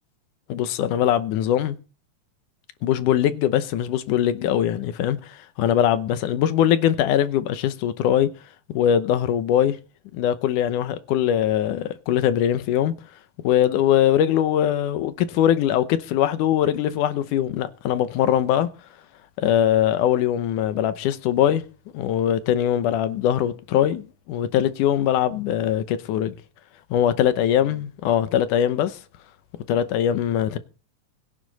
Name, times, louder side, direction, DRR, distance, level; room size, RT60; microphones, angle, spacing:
voice 1, 0.5-1.8 2.8-8.3 8.7-9.8 10.1-12.9 13.4-18.7 19.4-21.6 21.9-26.3 26.9-29.0 29.7-30.6, left 10 dB, 80° left, 2.4 m, -21 dB
21.0 x 10.0 x 4.1 m
omnidirectional pair, 3.6 m